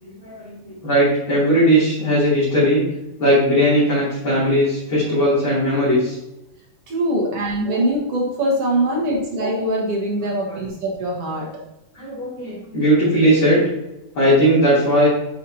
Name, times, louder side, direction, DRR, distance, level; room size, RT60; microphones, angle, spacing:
voice 1, 0.0-2.8 3.2-6.2 10.5-10.7 11.9-13.7 14.1-15.1, equal, 40° left, -11 dB, 3.6 m, -18 dB
voice 2, 6.9-11.5, right 1 dB, 55° right, -2 dB, 2.1 m, -22 dB
8.3 x 6.9 x 2.8 m, 0.89 s
omnidirectional pair, 3.5 m